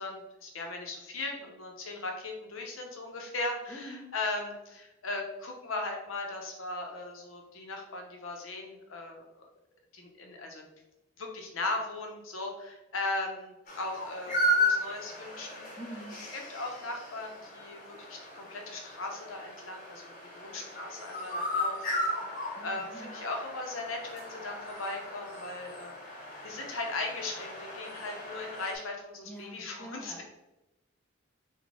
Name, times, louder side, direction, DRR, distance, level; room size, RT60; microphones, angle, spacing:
voice 1, 0.0-9.2 9.9-10.7 11.2-15.7 16.3-30.2, left 2 dB, 80° left, 2 dB, 0.7 m, -38 dB
voice 2, 3.7-4.1 15.8-16.2 22.6-23.1 29.2-30.2, right 1 dB, 5° left, -1 dB, 0.5 m, -45 dB
sound 1, 13.7-28.7, left 1 dB, 40° left, 0.8 m, -35 dB
3.9 x 2.2 x 3.5 m, 0.99 s
head